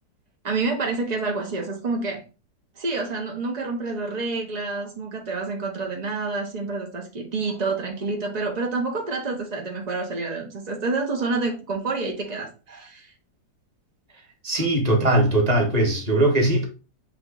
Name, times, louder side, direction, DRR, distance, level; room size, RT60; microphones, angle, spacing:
voice 1, 0.4-2.2 2.8-13.1 14.6-14.7, right 3 dB, 80° right, 0.3 m, -28 dB
voice 2, 14.4-16.6, right 1 dB, 30° right, 0.9 m, -20 dB
7.0 x 3.0 x 2.3 m
omnidirectional pair, 1.9 m